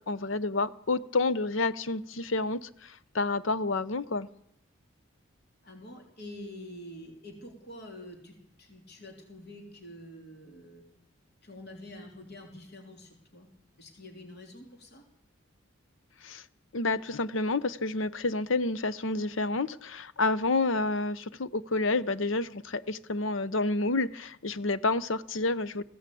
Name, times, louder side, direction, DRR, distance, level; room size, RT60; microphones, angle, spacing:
voice 1, 0.1-4.3 16.2-16.4 16.7-25.8, left 3 dB, 70° left, 15 dB, 0.8 m, -29 dB
voice 2, 5.6-10.8 11.4-13.5 13.8-15.0, left 1 dB, 55° left, 2 dB, 3.2 m, -46 dB
20.0 x 15.5 x 8.4 m, 0.79 s
head